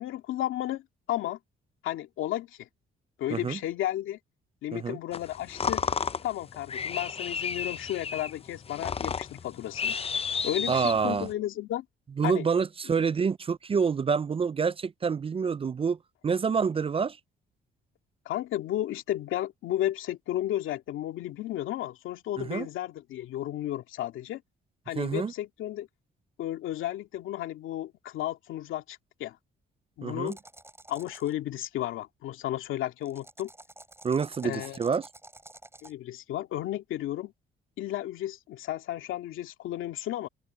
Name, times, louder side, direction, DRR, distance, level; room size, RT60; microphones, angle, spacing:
voice 1, 0.0-1.4 1.8-2.7 3.2-4.2 4.6-5.9 6.2-10.0 10.4-11.9 12.2-12.5 12.9-13.0 18.3-24.4 24.9-25.9 26.4-29.4 30.0-30.4 30.9-33.5 34.4-34.8 35.8-37.3 37.8-40.3, left 13 dB, 85° left, 2.4 m, -33 dB
sound 1, 5.1-11.3, left 6 dB, 30° left, 0.6 m, -33 dB
voice 2, 10.7-11.3 12.2-16.0 16.2-17.2 22.4-22.7 25.0-25.3 30.0-30.3 34.0-35.0, right 6 dB, 30° right, 0.4 m, -27 dB
sound 2, 30.3-31.3 33.0-35.9, right 2 dB, 10° right, 8.0 m, -50 dB
open air
cardioid pair, 90°, 20 cm